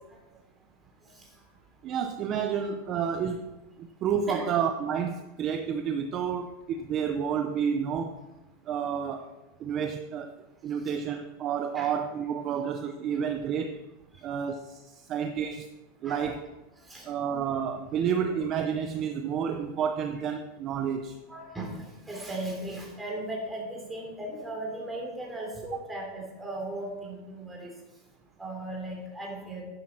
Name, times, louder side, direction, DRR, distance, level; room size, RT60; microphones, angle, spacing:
voice 1, 1.8-3.5 4.0-8.1 8.7-9.3 9.6-10.3 10.6-13.8 14.2-15.7 16.0-16.4 17.0-21.2, right 7 dB, 30° right, 7 dB, 0.7 m, -30 dB
voice 2, 21.3-21.7 22.1-27.7 28.4-29.6, right 1 dB, 5° right, -1 dB, 3.3 m, -37 dB
11.5 x 10.0 x 4.5 m, 1.1 s
supercardioid pair, 160°, 0 cm